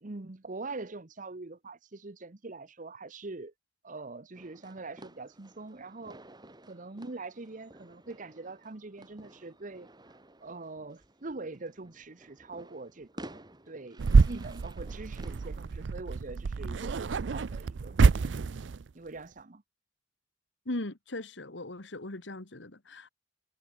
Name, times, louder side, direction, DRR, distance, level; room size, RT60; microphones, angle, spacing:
voice 1, 0.0-3.5 3.8-6.2 6.7-9.9 10.4-18.3 18.9-19.6, right 3 dB, 45° right, 1.0 m, -43 dB
sound 1, 4.3-15.7, right 1 dB, 25° right, 4.3 m, -53 dB
sound 2, 14.0-18.9, right 4 dB, 90° right, 0.5 m, -26 dB
voice 2, 20.7-23.1, left 2 dB, 90° left, 2.0 m, -38 dB
head